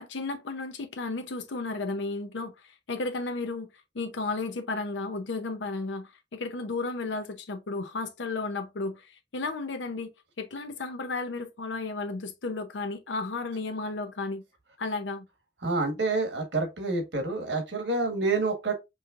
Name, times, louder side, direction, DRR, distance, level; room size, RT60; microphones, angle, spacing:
voice 1, 0.0-3.7 3.9-10.1 10.4-14.4 14.8-15.3, left 3 dB, 85° left, 0.6 m, -33 dB
voice 2, 15.6-18.7, right 3 dB, 75° right, 1.4 m, -28 dB
5.4 x 2.9 x 2.4 m
head